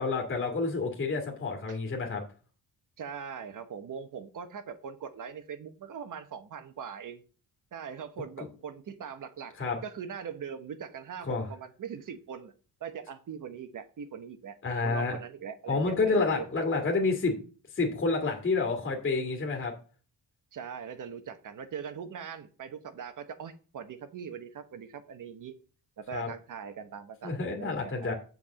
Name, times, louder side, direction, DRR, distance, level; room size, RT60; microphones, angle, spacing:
voice 1, 0.0-2.2 8.4-8.5 9.6-9.8 11.2-11.5 14.6-15.2 15.7-17.4 17.7-19.7 26.1-26.3 27.2-28.1, left 3 dB, 30° left, 2.0 m, -29 dB
voice 2, 3.0-7.2 7.7-9.6 9.8-12.5 12.8-14.6 14.8-16.5 20.5-25.5 26.0-28.1, right 7 dB, 50° right, 1.1 m, -41 dB
7.9 x 4.7 x 7.1 m
wide cardioid pair, 155°, 40 cm